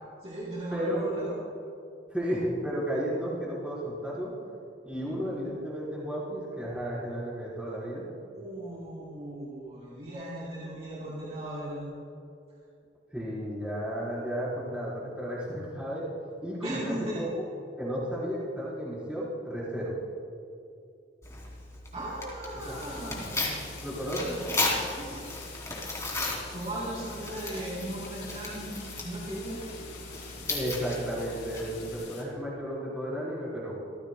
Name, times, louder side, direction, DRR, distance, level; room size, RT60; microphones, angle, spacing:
voice 1, 0.2-1.3 4.9-5.5 8.3-11.9 16.6-17.2 21.9-23.6 24.2-25.3 26.4-29.6, right 1 dB, 35° right, -8 dB, 3.8 m, -37 dB
voice 2, 0.7-1.0 2.1-4.3 4.8-8.1 13.1-16.0 16.4-16.8 17.1-17.3 17.8-19.9 22.6-22.8 23.8-24.3 30.5-33.7, equal, 5° right, -9 dB, 4.3 m, -33 dB
Tearing, 21.2-31.9, left 2 dB, 15° left, 3.0 m, -36 dB
sound 1, 22.6-32.2, left 4 dB, 70° left, 4.1 m, -45 dB
28.0 x 15.0 x 2.3 m, 2.5 s
head